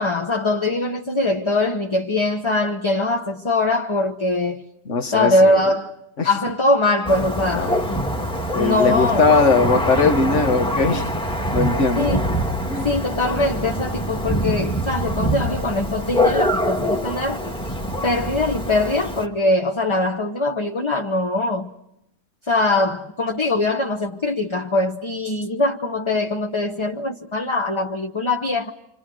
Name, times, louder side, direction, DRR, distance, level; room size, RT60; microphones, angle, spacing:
voice 1, 0.0-4.6 5.1-5.9 6.2-8.0 8.6-9.3 12.0-12.3 12.8-17.4 18.0-21.7 22.5-28.7, left 2 dB, 25° left, 0.9 m, -22 dB
voice 2, 4.8-5.6 6.2-6.3 7.5-7.7 8.5-11.1 11.5-12.1 12.7-12.9, left 4 dB, 55° left, 1.7 m, -19 dB
Thunder, 7.0-19.3, equal, 5° left, 1.6 m, -24 dB
28.5 x 27.0 x 6.3 m
omnidirectional pair, 1.5 m